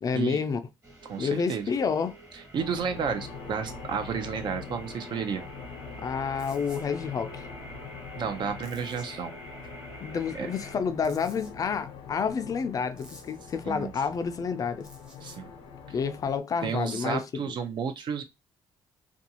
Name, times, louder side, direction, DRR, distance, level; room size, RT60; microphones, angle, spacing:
voice 1, 0.0-0.6 1.2-2.1 6.0-7.5 10.0-14.9 15.9-17.5, left 6 dB, 40° left, 0.4 m, -29 dB
sound 1, 0.8-10.7, right 1 dB, 30° right, 1.3 m, -47 dB
voice 2, 1.1-1.7 2.5-5.4 8.2-9.3 10.3-10.5 13.6-13.9 15.2-15.5 16.6-18.2, right 6 dB, 55° right, 0.6 m, -32 dB
sound 2, 2.6-16.4, left 5 dB, 80° left, 0.7 m, -44 dB
sound 3, 6.4-6.9 8.6-9.1 11.0-11.5 13.0-13.4 14.8-15.4, equal, 10° right, 0.7 m, -51 dB
2.5 x 2.3 x 2.7 m
cardioid pair, 105°, 9 cm